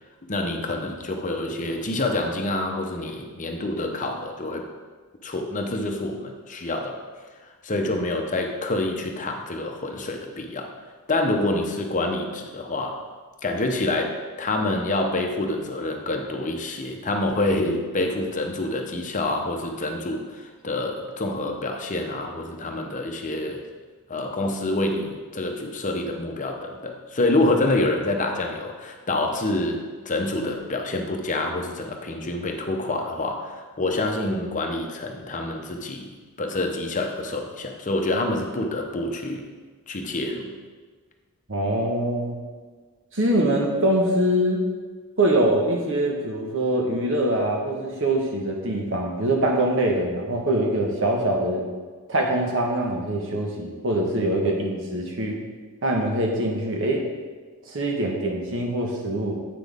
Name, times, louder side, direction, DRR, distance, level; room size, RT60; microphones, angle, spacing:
voice 1, 0.3-4.7 5.2-7.0 7.6-10.7 11.1-13.0 13.4-23.6 24.1-36.1 36.4-39.5 39.9-40.5, left 2 dB, 35° left, 3 dB, 0.8 m, -27 dB
voice 2, 41.5-42.4 43.1-44.7 45.2-51.7 52.1-55.4 55.8-57.0 57.7-59.3, right 1 dB, 60° right, 0 dB, 1.3 m, -23 dB
8.3 x 6.0 x 3.5 m, 1.4 s
head